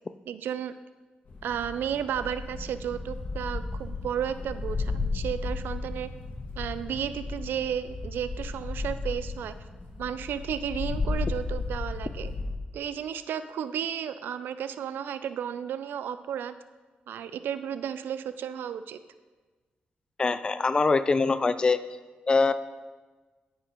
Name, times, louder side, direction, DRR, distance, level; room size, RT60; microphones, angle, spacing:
voice 1, 0.3-0.7 1.4-6.1 6.6-9.6 10.0-12.3 12.7-16.5 17.1-19.0, right 9 dB, 90° right, 12 dB, 0.3 m, -33 dB
sound 1, 1.3-12.5, left 3 dB, 65° left, 1.6 m, -34 dB
voice 2, 20.2-21.8 22.3-22.5, left 4 dB, 25° left, 13 dB, 0.4 m, -23 dB
9.8 x 8.9 x 3.0 m, 1.3 s
wide cardioid pair, 125°, 3 cm